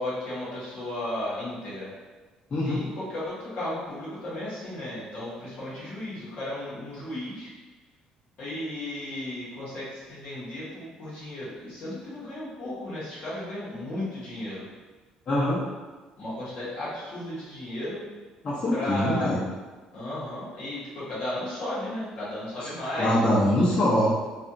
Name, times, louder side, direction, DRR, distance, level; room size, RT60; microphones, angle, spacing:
voice 1, 0.0-1.9 2.6-7.5 8.4-14.6 16.2-18.0 18.7-19.3 19.9-23.2, left 1 dB, 60° left, -9 dB, 1.4 m, -34 dB
voice 2, 2.5-2.8 15.3-15.6 18.4-19.5 23.0-24.1, left 1 dB, 45° left, -10 dB, 1.4 m, -23 dB
3.3 x 2.5 x 2.7 m, 1.3 s
supercardioid pair, 80°, 3 cm